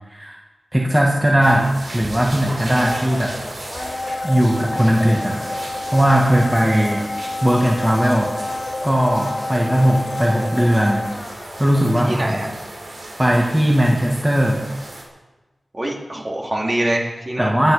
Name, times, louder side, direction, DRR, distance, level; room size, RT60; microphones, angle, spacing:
voice 1, 0.7-3.4 4.2-5.4 5.9-7.0 7.4-8.3 8.8-11.1 11.6-12.4 13.2-14.7 17.4-17.7, equal, 15° right, -2 dB, 2.0 m, -18 dB
sound 1, 1.4-15.0, right 1 dB, 70° right, 3.8 m, -36 dB
Domestic sounds home sounds, 2.6-12.5 12.8-12.9, left 2 dB, 40° left, 1.4 m, -29 dB
voice 2, 12.0-12.5 15.7-17.5, right 1 dB, 35° right, -1 dB, 3.2 m, -24 dB
23.5 x 9.4 x 5.1 m, 1.2 s
wide cardioid pair, 65°, 0 cm